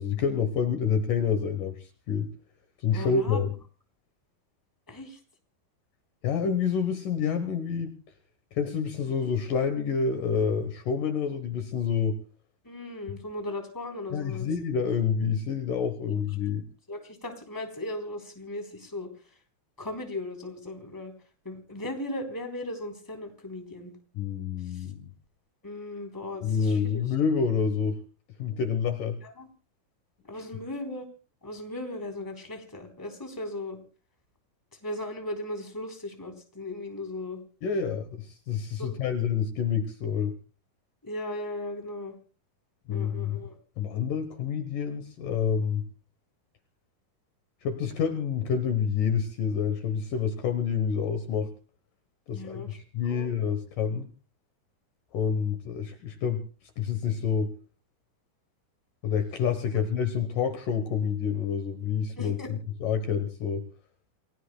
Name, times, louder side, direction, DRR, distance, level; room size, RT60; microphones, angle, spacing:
voice 1, 0.0-2.3 2.8-3.5 6.2-8.0 8.5-12.2 14.1-16.6 24.2-25.1 26.4-28.0 28.4-29.2 37.6-40.3 42.9-43.4 43.8-45.8 47.6-51.5 52.3-54.1 55.1-56.4 56.8-57.5 59.0-63.6, left 6 dB, 65° left, 8 dB, 2.5 m, -28 dB
voice 2, 2.9-3.4 4.9-5.2 12.6-14.5 16.1-16.2 16.9-19.1 19.8-21.1 21.4-23.9 24.6-24.9 25.6-27.1 29.2-29.5 30.2-31.1 31.4-33.8 34.8-37.4 38.8-39.0 41.0-42.1 42.9-43.6 52.3-52.8 53.0-53.3 59.7-59.8 62.1-62.5, left 1 dB, 5° left, 3 dB, 3.1 m, -37 dB
28.5 x 18.5 x 2.2 m, 0.37 s
omnidirectional pair, 4.4 m